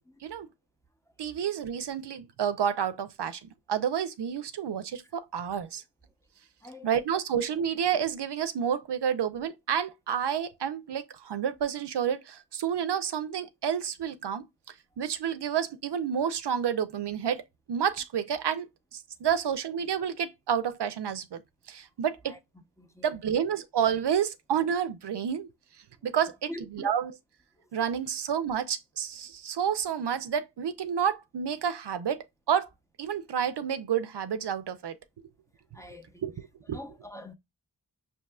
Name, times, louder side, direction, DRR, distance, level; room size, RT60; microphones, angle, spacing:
voice 1, 1.2-3.4 3.7-5.8 6.8-14.5 15.0-17.4 17.7-21.4 21.7-22.4 23.0-25.5 26.0-26.5 26.8-27.1 27.7-32.7 33.0-35.0 36.2-36.3 36.7-36.8, right 8 dB, 85° right, 0.5 m, -29 dB
voice 2, 22.8-23.4 26.0-26.2 26.5-26.9 27.6-27.7 35.7-36.2 36.6-37.3, left 1 dB, 10° left, 0.6 m, -45 dB
5.3 x 2.7 x 2.2 m
wide cardioid pair, 45°, 40 cm